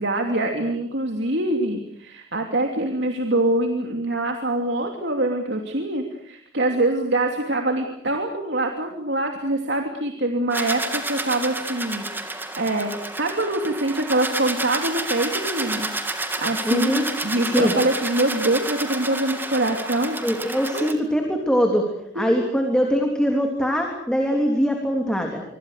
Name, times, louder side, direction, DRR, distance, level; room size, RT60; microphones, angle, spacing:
voice 1, 0.0-15.9 16.4-20.2 20.7-20.9 22.1-22.4, right 2 dB, 70° right, 3 dB, 2.9 m, -24 dB
sound 1, 10.5-20.9, right 2 dB, 10° right, 2.4 m, -30 dB
voice 2, 16.6-17.0 17.5-17.7 20.2-21.8 22.1-25.4, equal, 5° left, 2 dB, 3.1 m, -22 dB
26.0 x 25.5 x 6.6 m, 0.71 s
head